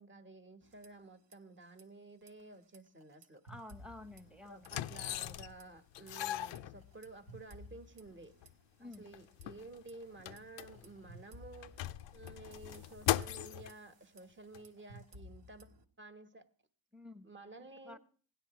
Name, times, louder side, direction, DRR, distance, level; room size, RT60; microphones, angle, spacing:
voice 1, 0.0-3.4 4.4-8.4 8.8-15.7 16.0-16.5 17.2-18.0, right 2 dB, 25° right, 1.2 m, -53 dB
sound 1, 0.6-1.4 1.6-1.8 2.2-4.9 5.1-5.6 6.1-9.5 9.9-15.8, equal, 75° right, 1.3 m, -57 dB
voice 2, 3.4-4.7 8.8-9.1 16.9-17.3 17.8-18.0, left 1 dB, ahead, 1.0 m, -50 dB
sound 2, 3.8-3.9 4.6-5.6 5.9-7.3 8.1-8.2 8.4-8.5 8.9-11.1 11.5-13.7 14.5-14.6, left 14 dB, 80° left, 0.5 m, -39 dB
16.5 x 10.0 x 3.0 m
supercardioid pair, 50°, 43 cm